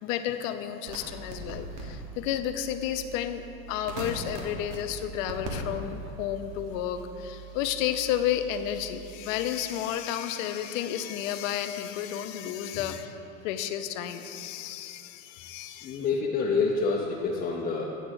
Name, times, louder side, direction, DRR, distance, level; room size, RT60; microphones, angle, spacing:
voice 1, 0.0-16.0, left 10 dB, 65° left, 9 dB, 0.6 m, -32 dB
sound 1, 0.9-8.9, right 2 dB, 55° right, 1.5 m, -40 dB
voice 2, 15.8-17.9, left 4 dB, 20° left, -3 dB, 0.4 m, -27 dB
9.2 x 3.6 x 6.1 m, 2.7 s
supercardioid pair, 125°, 42 cm